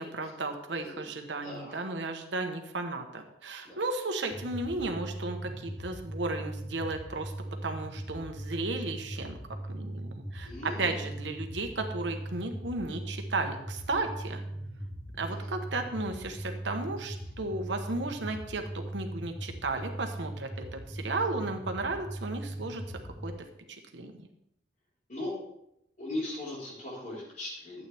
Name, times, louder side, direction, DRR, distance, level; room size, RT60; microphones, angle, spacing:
voice 1, 0.0-7.3 7.6-9.4 9.7-14.4 15.2-22.8 23.2-23.3 23.9-24.1, right 3 dB, 90° right, 5 dB, 1.2 m, -34 dB
voice 2, 0.7-1.1 1.4-1.8 3.6-3.8 10.4-11.0 15.3-15.5 25.1-25.3 26.0-27.9, left 1 dB, 45° left, -6 dB, 4.5 m, -38 dB
sound 1, 4.3-23.3, right 1 dB, 25° left, 1.8 m, -40 dB
12.0 x 8.4 x 3.5 m, 0.79 s
head